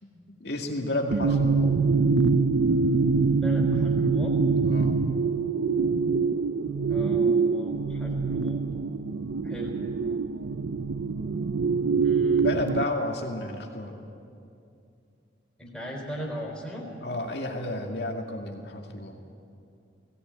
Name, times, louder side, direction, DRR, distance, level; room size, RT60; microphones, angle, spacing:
voice 1, 0.0-1.7 4.6-5.0 12.4-13.9 17.0-19.2, left 1 dB, 60° left, 1 dB, 2.3 m, -32 dB
sound 1, 1.1-12.8, right 4 dB, 85° right, 0.5 m, -24 dB
voice 2, 3.4-4.4 6.9-8.6 9.4-9.8 12.0-12.7 15.6-16.9, equal, 5° left, -4 dB, 4.1 m, -39 dB
19.0 x 17.0 x 9.0 m, 2.5 s
head